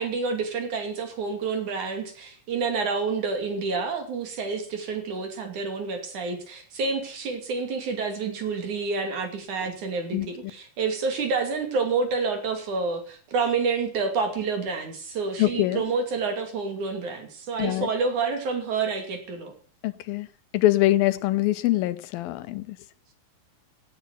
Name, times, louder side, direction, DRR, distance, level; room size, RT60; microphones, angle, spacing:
voice 1, 0.0-19.5, right 4 dB, 55° right, 4.0 m, -28 dB
voice 2, 15.4-15.8 17.6-17.9 19.8-20.3 20.5-22.8, left 16 dB, 85° left, 2.6 m, -24 dB
16.5 x 9.5 x 6.0 m
omnidirectional pair, 4.2 m